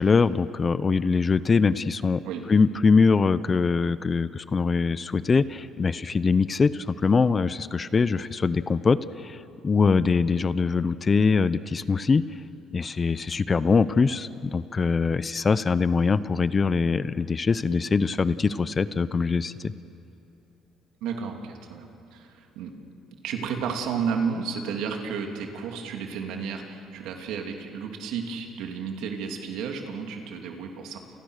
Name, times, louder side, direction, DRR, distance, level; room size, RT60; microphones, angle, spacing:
voice 1, 0.0-2.2 2.5-9.4 9.6-12.2 12.7-19.7, left 4 dB, 30° left, 15 dB, 0.7 m, -23 dB
voice 2, 21.0-22.7 23.2-31.0, right 6 dB, 85° right, 3 dB, 3.0 m, -32 dB
29.5 x 29.0 x 6.6 m, 2.7 s
cardioid pair, 115°, 0 cm